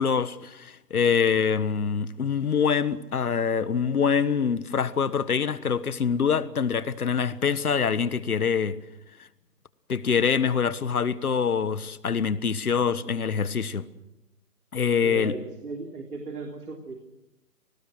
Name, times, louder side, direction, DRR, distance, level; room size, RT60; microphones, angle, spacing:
voice 1, 0.0-8.8 9.9-13.9 14.7-15.3, left 6 dB, 65° left, 1.4 m, -25 dB
voice 2, 15.0-16.9, right 3 dB, 70° right, 3.5 m, -36 dB
28.0 x 19.0 x 6.4 m
hypercardioid pair, 175°, 47 cm